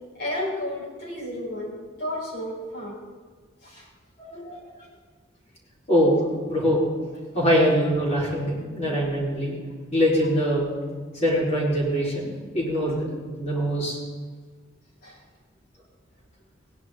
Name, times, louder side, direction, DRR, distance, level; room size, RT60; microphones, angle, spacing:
voice 1, 0.1-3.0 3.6-3.9 4.7-4.8 15.0-15.2, left 1 dB, 55° left, -6 dB, 4.8 m, -32 dB
voice 2, 4.2-4.6 5.9-6.2 6.5-6.8 7.3-9.6 9.9-10.8 11.1-13.1 13.4-14.0, equal, 35° left, -6 dB, 4.6 m, -23 dB
19.0 x 10.5 x 3.9 m, 1.5 s
head